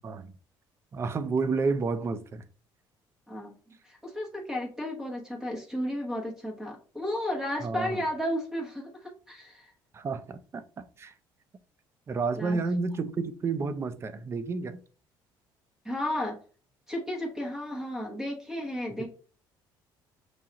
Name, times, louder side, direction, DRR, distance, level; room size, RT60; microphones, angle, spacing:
voice 1, 0.9-2.4 7.6-8.0 9.9-11.1 12.1-14.8, right 4 dB, 30° right, 0.5 m, -30 dB
voice 2, 3.8-9.7 12.3-12.6 15.8-16.4 16.9-19.1, left 1 dB, 5° right, 1.0 m, -33 dB
6.2 x 2.4 x 2.8 m
cardioid pair, 115°, 9 cm